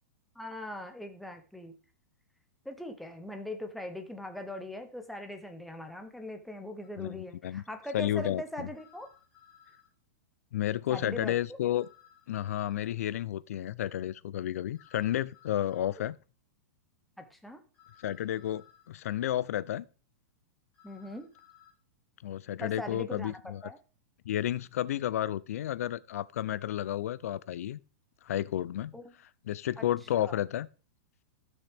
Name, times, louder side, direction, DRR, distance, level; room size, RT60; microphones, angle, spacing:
voice 1, 0.4-1.7 2.6-9.1 10.9-11.4 17.2-17.6 20.8-21.3 22.6-23.3 23.6-23.8 28.9-29.1 29.8-29.9 30.2-30.4, left 1 dB, ahead, 0.6 m, -41 dB
sound 1, 6.8-6.9 8.7-9.9 11.7-12.9 14.7-15.9 17.7-18.9 20.7-21.7, left 9 dB, 15° left, 2.8 m, -60 dB
voice 2, 7.9-8.7 10.5-11.9 12.3-16.2 18.0-19.9 22.2-23.6 24.3-27.8 28.2-28.9 29.5-30.7, left 12 dB, 55° left, 0.4 m, -31 dB
14.5 x 6.2 x 3.4 m
supercardioid pair, 180°, 9 cm